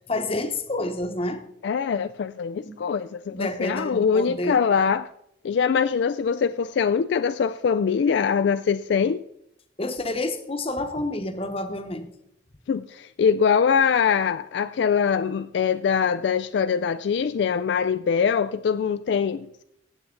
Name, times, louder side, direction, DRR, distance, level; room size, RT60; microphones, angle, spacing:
voice 1, 0.1-1.5 2.6-2.8 3.3-4.6 9.8-12.1, left 2 dB, 30° left, 1.0 m, -29 dB
voice 2, 1.6-5.1 5.4-9.2 12.7-19.6, left 6 dB, 65° left, 0.3 m, -23 dB
16.5 x 7.3 x 3.8 m
head